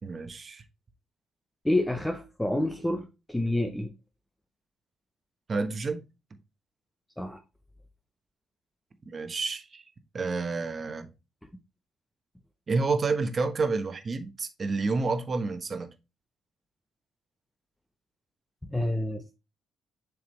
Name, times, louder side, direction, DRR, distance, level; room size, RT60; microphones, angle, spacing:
voice 1, 0.0-0.6 5.5-6.0 9.1-9.8 10.1-11.1 12.7-15.9, right 4 dB, 40° right, 1.2 m, -29 dB
voice 2, 1.6-3.9 7.2-7.4 18.7-19.3, left 1 dB, 10° left, 0.9 m, -28 dB
7.4 x 4.8 x 3.2 m
cardioid pair, 90°, 0 cm